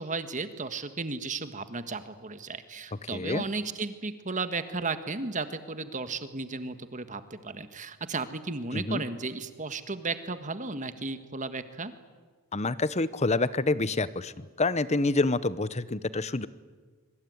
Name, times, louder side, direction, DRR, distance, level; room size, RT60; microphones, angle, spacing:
voice 1, 0.0-11.9, right 3 dB, 35° right, 10 dB, 1.6 m, -34 dB
voice 2, 3.1-3.4 8.7-9.0 12.5-14.3 14.6-16.5, left 3 dB, 30° left, 16 dB, 0.9 m, -27 dB
25.5 x 23.5 x 9.6 m, 1.4 s
head